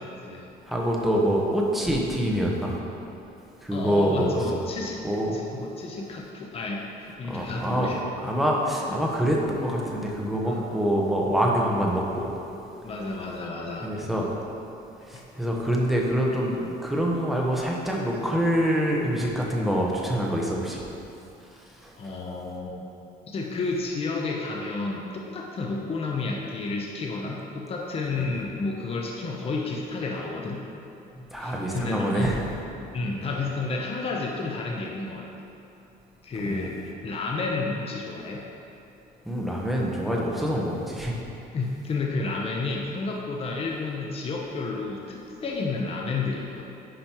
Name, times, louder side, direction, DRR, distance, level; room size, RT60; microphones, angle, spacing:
voice 1, 0.0-0.5 3.7-5.0 5.3-8.0 8.2-8.3 10.4-10.7 12.8-13.9 22.0-22.8 23.3-30.6 31.4-32.3 32.9-35.3 36.2-38.4 41.5-46.6, left 3 dB, 35° left, -1 dB, 0.8 m, -31 dB
voice 2, 0.6-2.7 3.6-4.6 5.0-5.3 7.2-12.4 13.8-14.3 15.1-20.8 21.8-22.1 31.3-32.4 33.1-33.2 36.4-36.7 39.3-41.2, equal, ahead, -3 dB, 1.1 m, -25 dB
9.9 x 5.2 x 3.0 m, 2.8 s
cardioid pair, 110°, 17 cm